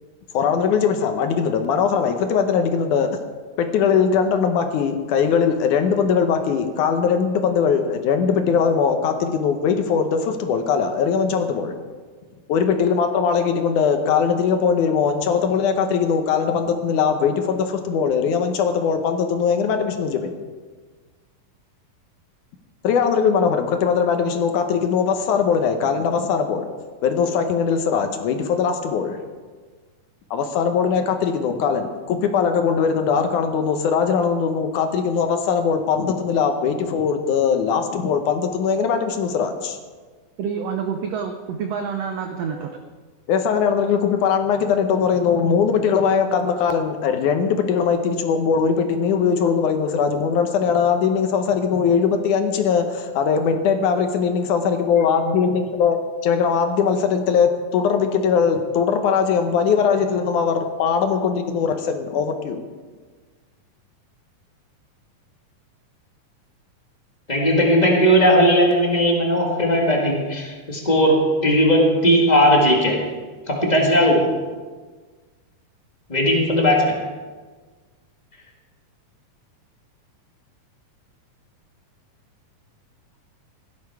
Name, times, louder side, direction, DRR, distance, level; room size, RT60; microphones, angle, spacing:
voice 1, 0.3-3.1 3.6-11.7 12.5-20.4 22.8-26.7 27.0-29.2 30.3-39.8 43.3-56.0 56.2-62.6, left 6 dB, 70° left, 6 dB, 2.3 m, -20 dB
voice 2, 40.4-42.8, right 6 dB, 85° right, 5 dB, 1.4 m, -28 dB
voice 3, 67.3-73.1 73.5-74.3 76.1-77.0, equal, 25° left, 0 dB, 1.0 m, -17 dB
16.0 x 10.5 x 4.7 m, 1.4 s
omnidirectional pair, 3.9 m